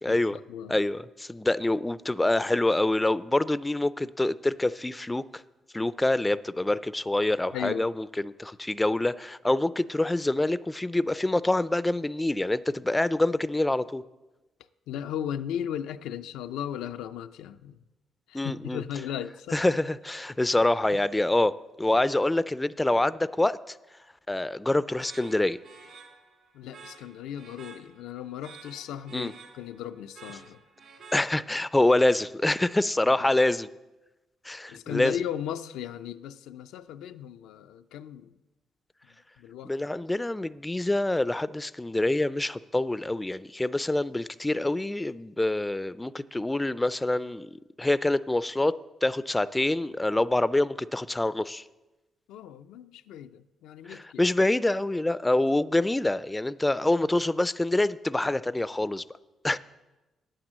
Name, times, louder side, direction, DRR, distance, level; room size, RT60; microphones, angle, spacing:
voice 1, 0.0-0.4 0.7-5.2 5.7-14.0 18.3-18.8 19.5-23.8 24.3-25.6 29.1-29.3 31.1-33.7 34.4-35.2 39.6-48.8 49.0-51.6 53.9-59.0 59.4-59.6, left 2 dB, 10° left, 0.3 m, -26 dB
voice 2, 7.5-7.9 14.9-17.8 18.3-19.6 26.5-30.6 34.7-38.3 39.4-39.7 52.3-54.2, left 9 dB, 90° left, 0.4 m, -36 dB
sound 1, 25.0-31.7, right 4 dB, 70° right, 2.9 m, -51 dB
9.2 x 9.0 x 7.4 m
cardioid pair, 90°, 0 cm